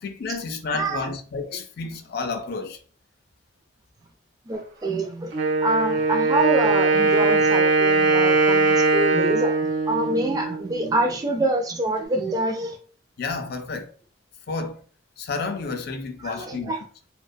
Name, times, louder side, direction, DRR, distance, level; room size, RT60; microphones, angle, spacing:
voice 1, 0.0-2.8 13.2-13.9 14.5-14.8 15.2-16.7, left 4 dB, 55° left, 0.4 m, -31 dB
voice 2, 0.7-1.1 4.5-5.3 5.6-12.8 16.2-16.8, right 2 dB, 20° right, 0.3 m, -26 dB
Wind instrument woodwind instrument, 5.3-11.0, right 3 dB, 70° right, 0.6 m, -21 dB
2.3 x 2.2 x 2.4 m
head